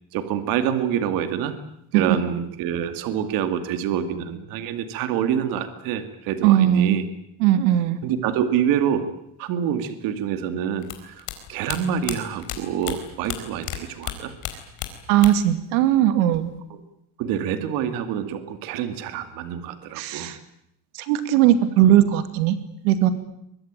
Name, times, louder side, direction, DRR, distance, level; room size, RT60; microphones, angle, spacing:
voice 1, 0.1-1.6 1.9-7.0 8.0-9.1 9.4-14.3 17.2-20.3, right 9 dB, 50° right, 9 dB, 2.4 m, -26 dB
voice 2, 6.4-7.0 7.4-8.0 15.1-16.5 20.0-20.4 20.9-22.6 22.8-23.1, right 12 dB, 85° right, 10 dB, 2.5 m, -18 dB
sound 1, 10.8-13.8 14.0-15.6 15.8-16.6, left 14 dB, 45° left, 4.2 m, -33 dB
24.0 x 22.5 x 9.0 m, 0.77 s
cardioid pair, 170°, 43 cm